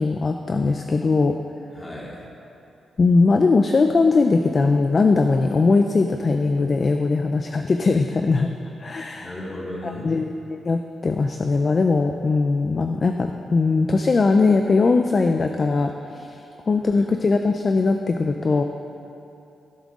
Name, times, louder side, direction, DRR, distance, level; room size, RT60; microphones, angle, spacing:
voice 1, 0.0-1.4 3.0-8.5 8.8-9.3 9.8-18.6, left 3 dB, 35° left, 5 dB, 0.4 m, -20 dB
voice 2, 1.7-2.3 9.2-10.1 16.9-17.1, left 1 dB, 20° left, -4 dB, 2.3 m, -35 dB
16.5 x 7.5 x 3.7 m, 2.8 s
cardioid pair, 115°, 0 cm